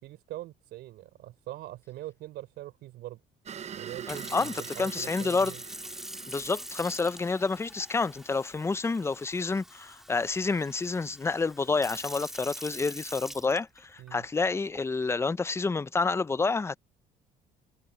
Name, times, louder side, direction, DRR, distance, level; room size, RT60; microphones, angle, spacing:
voice 1, 0.0-3.2 3.8-5.6 14.0-14.3, right 15 dB, 80° right, 3.4 m, -43 dB
sound 1, 3.4-8.0, right 8 dB, 40° right, 0.7 m, -44 dB
Sink (filling or washing) / Fill (with liquid), 3.9-14.1 14.7-15.0, equal, ahead, 2.4 m, -44 dB
voice 2, 4.1-5.5 6.3-16.8, left 4 dB, 15° left, 0.5 m, -29 dB
cardioid pair, 110°, 17 cm